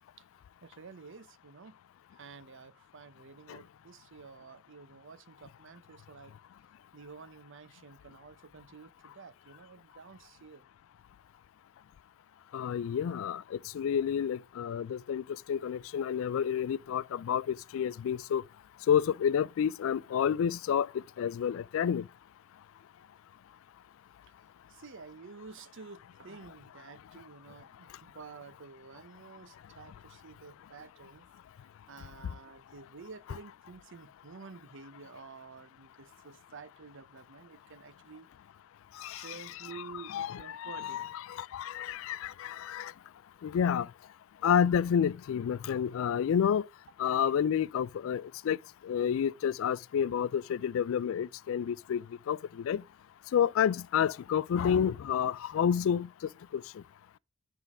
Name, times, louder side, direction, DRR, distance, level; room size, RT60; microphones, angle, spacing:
voice 1, 0.6-1.8 2.1-6.3 6.9-10.7 24.7-31.3 31.6-38.3 39.0-41.1, right 5 dB, 60° right, 0.6 m, -50 dB
voice 2, 12.5-18.4 18.9-22.1 39.0-39.3 40.1-42.9 43.4-43.9 44.4-46.7 47.0-48.6 48.8-52.8 53.3-56.1 56.5-56.6, left 8 dB, 65° left, 0.3 m, -30 dB
9.7 x 3.7 x 4.8 m
head